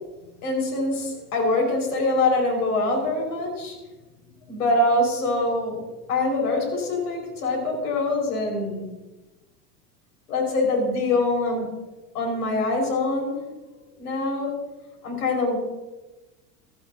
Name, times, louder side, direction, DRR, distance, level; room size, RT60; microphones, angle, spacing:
voice 1, 0.4-3.8 4.5-5.8 6.1-8.9 10.3-11.7 12.1-13.4 14.0-14.6 15.0-15.6, left 2 dB, 75° left, 0 dB, 5.2 m, -24 dB
18.5 x 17.0 x 2.8 m, 1.1 s
hypercardioid pair, 85°, 46 cm